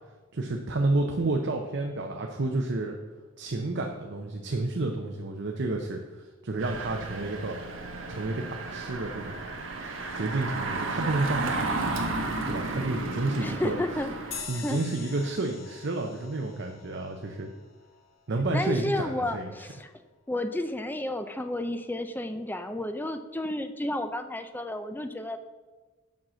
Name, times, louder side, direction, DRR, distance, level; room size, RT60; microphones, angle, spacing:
voice 1, 0.3-3.0 3.4-7.6 8.1-9.4 10.1-11.9 12.5-13.8 14.5-17.5 18.3-19.6, right 2 dB, 60° right, 2 dB, 0.7 m, -30 dB
Engine, 6.6-14.4, right 3 dB, 75° right, 1.2 m, -33 dB
voice 2, 13.4-14.8 18.5-19.9 20.3-25.4, left 1 dB, 10° left, 8 dB, 0.5 m, -32 dB
sound 1, 14.3-19.2, left 6 dB, 80° left, 1.4 m, -45 dB
7.4 x 5.7 x 6.3 m, 1.3 s
head